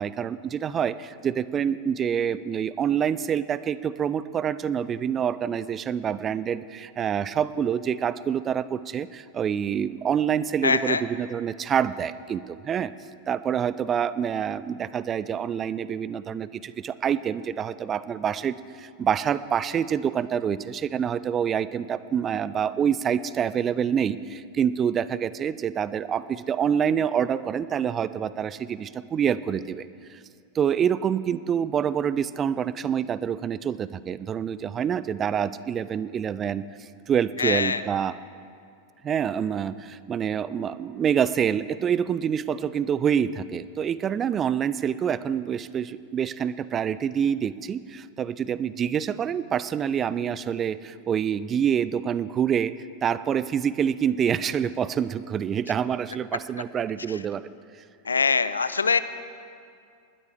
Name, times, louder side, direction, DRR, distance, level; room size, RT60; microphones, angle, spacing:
voice 1, 0.0-12.9 13.3-30.2 30.5-38.2 39.0-52.7 53.0-57.5, right 8 dB, 25° right, 17 dB, 0.4 m, -26 dB
voice 2, 10.6-11.0 37.4-37.8 58.1-59.0, left 5 dB, 75° left, 14 dB, 0.5 m, -23 dB
20.0 x 12.5 x 3.4 m, 2.3 s
figure-of-eight pair, 90°, 0 cm